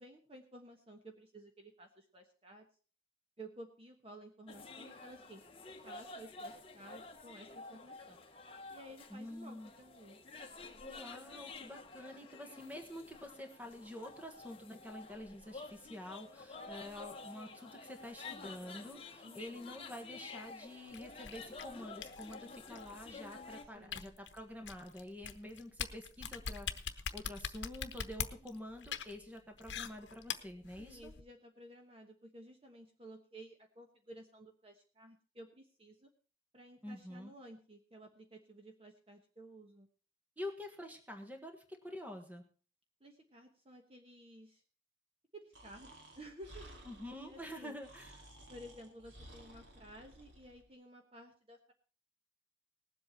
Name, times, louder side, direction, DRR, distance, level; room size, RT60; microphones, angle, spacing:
voice 1, 0.0-2.7 3.4-5.4 5.8-8.2 8.7-10.2 19.2-19.7 23.7-24.1 30.8-36.1 36.5-39.9 43.0-44.6 45.3-46.7 47.2-47.8 48.5-51.7, right 1 dB, 30° right, 4 dB, 1.1 m, -54 dB
sound 1, 4.5-23.7, left 3 dB, 30° left, 1.2 m, -51 dB
voice 2, 9.1-9.7 10.8-31.1 36.8-37.3 40.4-42.4 46.9-48.3, left 1 dB, 10° right, 4 dB, 1.5 m, -48 dB
sound 2, 20.9-31.2, left 7 dB, 80° left, 0.9 m, -43 dB
Breathing, 45.5-50.6, right 1 dB, 75° right, 2.4 m, -56 dB
19.0 x 7.8 x 4.3 m, 0.39 s
head